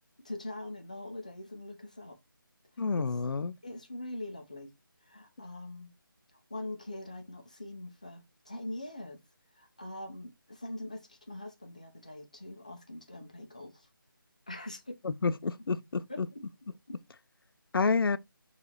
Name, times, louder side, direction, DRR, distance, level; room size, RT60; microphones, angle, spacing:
voice 1, 0.2-2.2 2.9-3.1 3.6-4.7 5.0-5.9 6.5-9.2 9.5-13.9 14.5-15.0 16.1-16.4 16.9-17.0, left 1 dB, 20° left, 0.4 m, -43 dB
voice 2, 2.8-3.5 15.0-16.3 17.7-18.2, left 4 dB, 80° left, 0.4 m, -29 dB
4.0 x 2.4 x 2.8 m
figure-of-eight pair, 175°, 12 cm